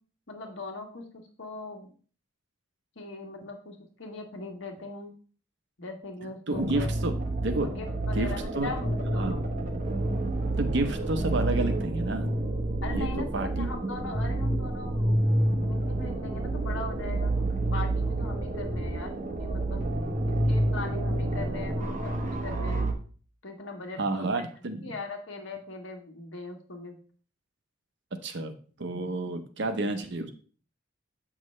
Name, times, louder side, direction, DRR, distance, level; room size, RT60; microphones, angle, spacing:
voice 1, 0.3-1.9 2.9-5.1 5.8-6.9 7.6-9.5 12.8-15.3 15.6-17.3 17.7-19.9 20.3-22.9 23.4-24.5 24.8-26.9, left 2 dB, 70° left, 2 dB, 1.4 m, -40 dB
sound 1, 6.5-22.9, right 1 dB, 40° right, 1.1 m, -29 dB
voice 2, 6.5-7.1 7.4-7.7 8.1-8.7 9.1-9.4 10.6-12.3 12.9-13.7 24.0-24.9 28.2-30.3, right 2 dB, 60° right, 7 dB, 0.8 m, -30 dB
8.3 x 6.0 x 3.2 m, 0.41 s
head